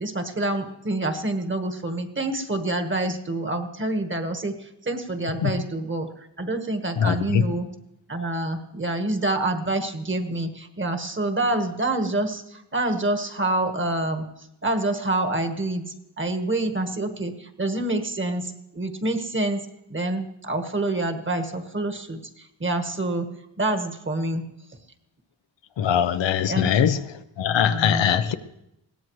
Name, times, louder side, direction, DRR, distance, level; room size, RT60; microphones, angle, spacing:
voice 1, 0.0-7.7 8.1-15.8 16.2-23.3 23.6-24.4 26.5-26.7 27.6-28.0, right 2 dB, 25° right, 1.4 m, -27 dB
voice 2, 7.0-7.5 25.8-27.0 27.4-28.3, left 8 dB, 85° left, 0.8 m, -21 dB
21.0 x 17.0 x 3.2 m
wide cardioid pair, 110°, 43 cm